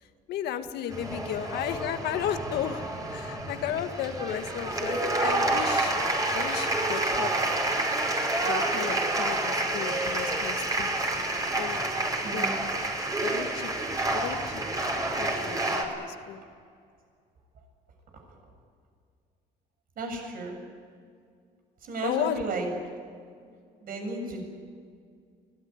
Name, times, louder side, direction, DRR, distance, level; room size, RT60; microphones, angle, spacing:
voice 1, 0.0-5.9 6.3-7.3 8.4-11.8 12.3-12.5 13.2-13.7 14.1-14.8 15.2-16.4 22.0-22.4, left 10 dB, 75° left, 8 dB, 1.7 m, -34 dB
sound 1, 0.9-15.8, right 2 dB, 20° right, 5.3 m, -28 dB
voice 2, 12.2-12.6 18.1-18.2 20.0-20.6 21.8-22.7 23.8-24.4, right 3 dB, 60° right, 3 dB, 7.3 m, -34 dB
25.0 x 19.0 x 9.7 m, 2.2 s
cardioid pair, 110°, 17 cm